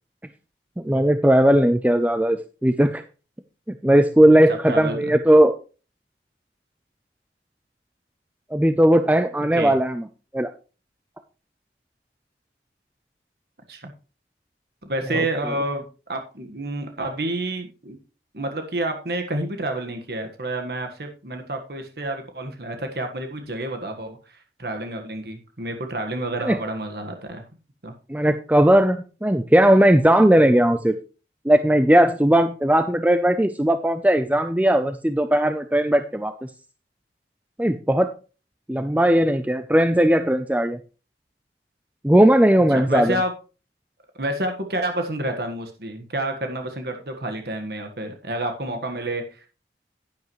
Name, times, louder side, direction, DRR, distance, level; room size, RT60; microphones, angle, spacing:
voice 1, 0.8-3.0 3.8-5.5 8.5-10.0 10.3-10.5 15.1-15.2 26.4-26.6 28.1-31.0 31.4-36.5 37.6-38.1 38.7-40.8 42.0-43.2, right 1 dB, 10° right, 9 dB, 0.5 m, -18 dB
voice 2, 4.7-5.2 9.5-9.7 13.7-13.9 14.8-18.0 18.3-27.4 27.8-27.9 42.7-43.3 44.2-49.5, right 1 dB, 65° right, 5 dB, 1.5 m, -29 dB
10.5 x 10.5 x 3.1 m, 0.34 s
head